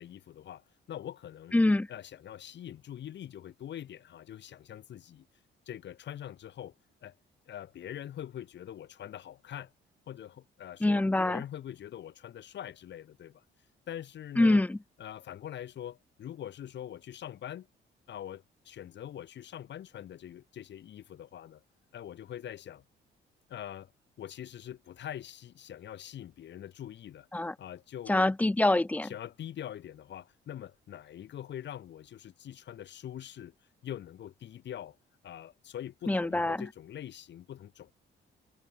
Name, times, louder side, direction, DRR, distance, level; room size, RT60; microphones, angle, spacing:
voice 1, 0.0-1.5 1.9-5.3 5.7-6.7 7.0-7.1 7.5-9.7 10.1-13.4 13.9-14.6 15.0-17.7 18.1-21.6 21.9-22.8 23.5-23.9 24.2-27.3 27.6-28.3 29.0-33.5 33.8-35.0 35.2-37.9, left 10 dB, 65° left, 1.4 m, -43 dB
voice 2, 1.5-1.9 10.8-11.4 14.4-14.8 27.3-27.5 28.1-29.1 36.1-36.6, left 2 dB, 5° left, 0.4 m, -25 dB
cardioid pair, 90°, 20 cm